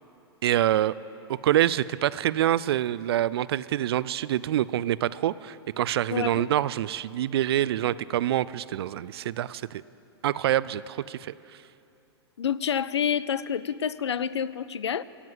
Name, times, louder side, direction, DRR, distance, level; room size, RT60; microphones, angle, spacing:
voice 1, 0.4-0.9 1.4-9.8 10.2-11.3, right 12 dB, 65° right, 18 dB, 0.4 m, -26 dB
voice 2, 6.1-6.5 12.4-15.0, left 8 dB, 80° left, 18 dB, 0.4 m, -28 dB
16.5 x 7.3 x 7.6 m, 2.7 s
hypercardioid pair, 105°, 14 cm